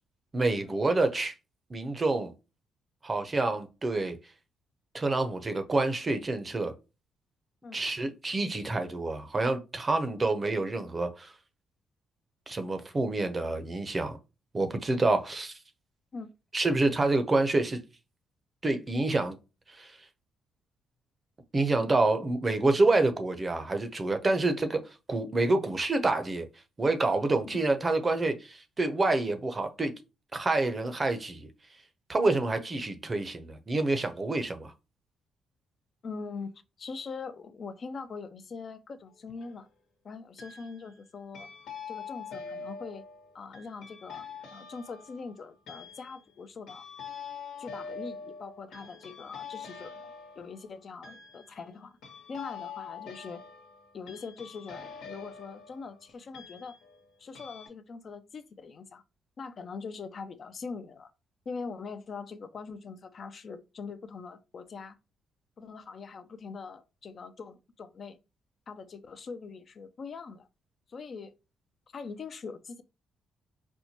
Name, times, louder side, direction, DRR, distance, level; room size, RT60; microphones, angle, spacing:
voice 1, 0.3-1.3 1.7-2.3 3.0-4.2 4.9-6.7 7.7-11.3 12.5-14.2 14.5-15.5 16.5-17.8 18.6-19.4 19.7-20.0 21.5-26.5 26.8-29.9 30.3-31.5 32.1-34.7, right 2 dB, 30° right, 0.6 m, -27 dB
voice 2, 36.0-39.7 40.0-41.5 41.9-43.0 43.3-44.3 44.5-46.9 47.6-51.9 52.3-53.4 53.9-56.8 57.2-59.0 59.4-61.1 61.5-65.0 65.6-68.2 68.7-70.5 70.9-71.3 71.9-72.8, left 4 dB, 50° left, 0.4 m, -42 dB
sound 1, 39.1-39.6 40.4-41.0 41.3-57.1 57.3-57.7, left 6 dB, 90° left, 1.2 m, -45 dB
4.3 x 2.1 x 2.8 m
cardioid pair, 90°, 0 cm